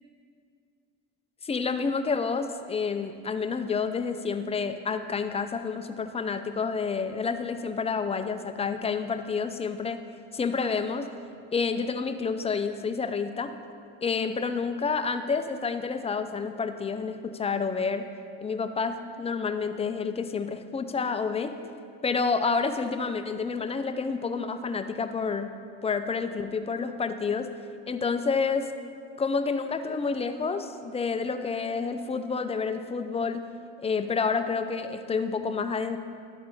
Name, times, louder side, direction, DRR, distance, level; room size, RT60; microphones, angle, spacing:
voice 1, 1.4-10.0 10.3-11.1 11.5-13.5 14.0-18.0 18.4-21.5 22.0-25.5 25.8-27.5 27.9-28.7 29.2-33.4 33.8-36.0, left 5 dB, 20° left, 9 dB, 0.4 m, -29 dB
11.5 x 4.2 x 4.2 m, 2.3 s
supercardioid pair, 90°, 33 cm